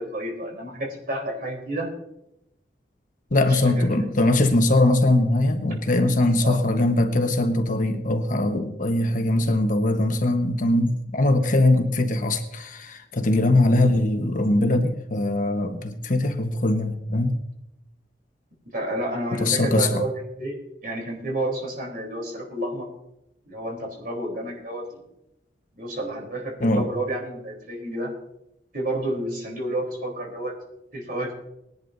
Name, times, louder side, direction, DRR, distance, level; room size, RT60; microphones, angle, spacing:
voice 1, 0.0-1.9 3.4-4.3 6.4-6.6 18.7-20.1 20.4-20.6 20.8-22.9 23.5-25.0 25.8-28.1 28.7-30.5 30.9-31.3, right 1 dB, 55° right, 0 dB, 3.7 m, -30 dB
voice 2, 3.3-17.4 19.3-20.0 26.6-26.9, left 2 dB, 50° left, 5 dB, 1.2 m, -21 dB
20.0 x 11.0 x 2.7 m, 0.84 s
head